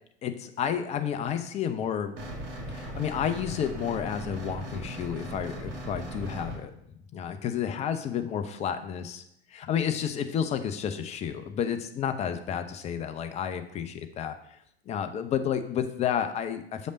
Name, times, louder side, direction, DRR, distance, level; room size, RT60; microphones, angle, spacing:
voice 1, 0.2-2.2 2.7-6.7 7.1-9.2 9.5-14.4 14.9-16.9, left 8 dB, 20° left, 8 dB, 0.6 m, -31 dB
sound 1, 2.2-6.6, equal, 40° right, 2.0 m, -38 dB
6.9 x 5.1 x 5.2 m, 0.75 s
figure-of-eight pair, 90°, 32 cm